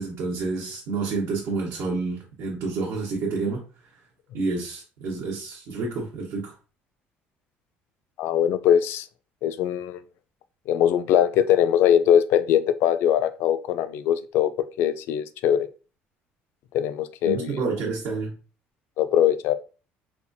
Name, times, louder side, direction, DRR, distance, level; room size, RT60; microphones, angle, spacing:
voice 1, 0.0-3.7 4.3-6.5 17.2-18.3, right 4 dB, 70° right, -4 dB, 1.0 m, -29 dB
voice 2, 8.2-9.1 9.4-10.0 10.7-14.5 14.8-15.7 16.7-17.6 19.0-19.5, left 10 dB, 70° left, 13 dB, 0.3 m, -21 dB
4.2 x 2.3 x 2.6 m, 0.36 s
cardioid pair, 140°, 4 cm